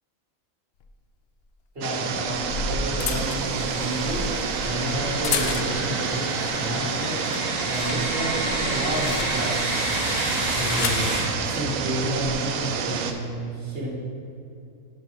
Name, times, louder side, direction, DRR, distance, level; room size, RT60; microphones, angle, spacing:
sound 1, 0.8-0.9 2.1-6.0 6.5-6.8 7.1-9.7 10.4-11.1 12.0-12.3, left 5 dB, 60° left, 0.7 m, -32 dB
voice 1, 1.8-4.2 4.6-7.2 7.7-9.6 10.5-13.9, right 1 dB, 45° right, -5 dB, 2.0 m, -30 dB
sound 2, 1.8-13.1, right 6 dB, 85° right, 1.0 m, -29 dB
sound 3, 3.2-11.2, right 1 dB, 20° right, 1.8 m, -30 dB
5.9 x 5.7 x 4.7 m, 2.5 s
omnidirectional pair, 1.4 m